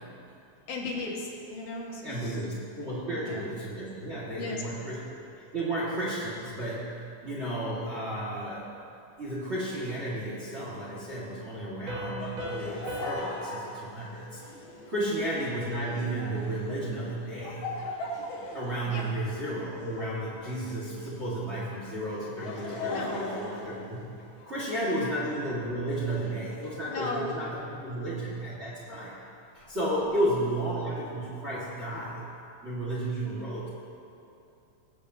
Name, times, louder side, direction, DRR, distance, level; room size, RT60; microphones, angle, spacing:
voice 1, 0.7-2.4 3.1-3.4 4.3-4.9 15.0-15.2 18.8-19.1 22.9-23.3 24.9-25.1 26.5-27.3 27.8-28.1 30.0-30.2, left 3 dB, 80° left, -3 dB, 3.0 m, -37 dB
voice 2, 2.0-7.0 7.2-8.7 9.2-14.4 14.9-17.7 18.5-24.1 24.4-29.2 29.5-32.2 32.6-33.7, right 1 dB, 30° right, -7 dB, 1.2 m, -33 dB
Piano, 11.9-15.3, equal, 70° right, 1.2 m, -41 dB
Laughter, 12.2-21.3 22.1-24.5, left 2 dB, 60° left, 1.5 m, -40 dB
21.5 x 7.4 x 2.7 m, 2.6 s
omnidirectional pair, 3.5 m